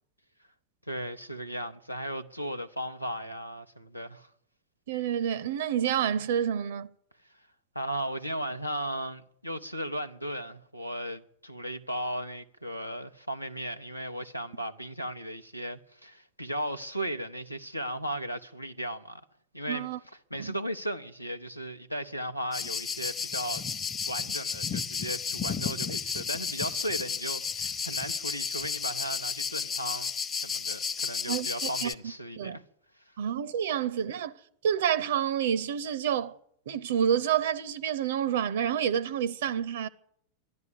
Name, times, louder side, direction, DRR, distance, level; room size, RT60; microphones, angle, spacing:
voice 1, 0.9-4.3 7.7-19.2 19.5-23.6 24.1-30.1 30.4-32.6, equal, 90° left, 0.8 m, -36 dB
voice 2, 4.9-6.9 19.7-20.0 20.4-20.5 31.3-31.5 31.8-31.9 32.4-32.6 33.2-34.3 34.6-36.4 36.7-39.9, right 9 dB, 60° right, 0.5 m, -28 dB
sound 1, 22.5-31.9, left 6 dB, 25° left, 0.8 m, -33 dB
13.0 x 11.0 x 10.0 m
figure-of-eight pair, 90°, 0 cm